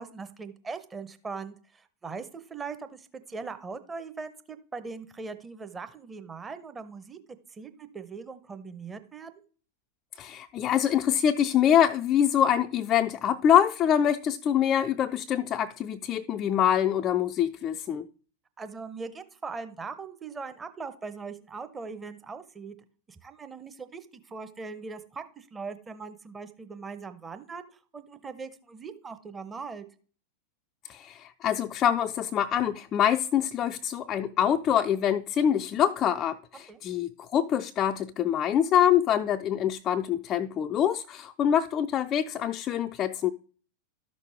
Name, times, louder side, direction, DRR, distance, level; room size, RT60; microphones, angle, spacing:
voice 1, 0.0-9.4 18.6-22.8 23.1-29.9 36.7-36.8, right 4 dB, 15° right, 0.8 m, -40 dB
voice 2, 10.2-18.1 30.9-43.3, left 9 dB, 30° left, 0.4 m, -25 dB
12.5 x 6.3 x 3.4 m
figure-of-eight pair, 90°, 0 cm